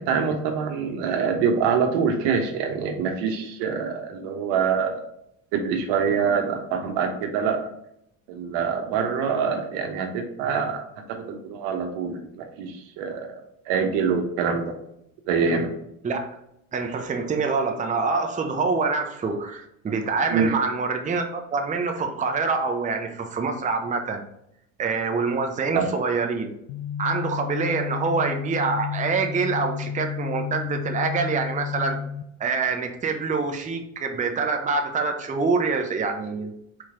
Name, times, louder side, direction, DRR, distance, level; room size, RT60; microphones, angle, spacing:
voice 1, 0.0-5.0 5.5-7.6 8.3-10.8 11.1-14.8 15.3-15.7 20.3-20.5 25.7-25.9, right 6 dB, 70° right, 5 dB, 1.0 m, -25 dB
voice 2, 16.7-24.2 24.8-26.5 27.0-32.0 32.4-36.5, right 4 dB, 20° right, 4 dB, 0.6 m, -25 dB
sound 1, 26.7-32.2, left 7 dB, 70° left, 0.6 m, -31 dB
4.3 x 3.1 x 3.7 m, 0.78 s
supercardioid pair, 80°, 42 cm